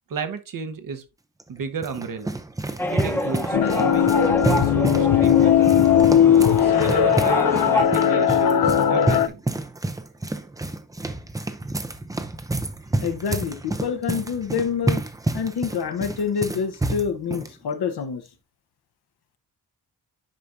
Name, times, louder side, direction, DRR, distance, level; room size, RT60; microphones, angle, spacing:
voice 1, 0.1-1.0 1.5-2.4 2.9-5.7 6.6-9.4, right 5 dB, 60° right, 1.0 m, -32 dB
sound 1, 1.4-17.5, right 2 dB, 10° right, 0.4 m, -29 dB
sound 2, 2.8-7.8, left 1 dB, 5° left, 0.8 m, -28 dB
sound 3, 3.5-9.3, left 9 dB, 60° left, 0.6 m, -18 dB
voice 2, 13.0-15.0 15.3-18.2, left 6 dB, 85° left, 1.0 m, -27 dB
10.5 x 4.6 x 2.5 m
wide cardioid pair, 180°, 38 cm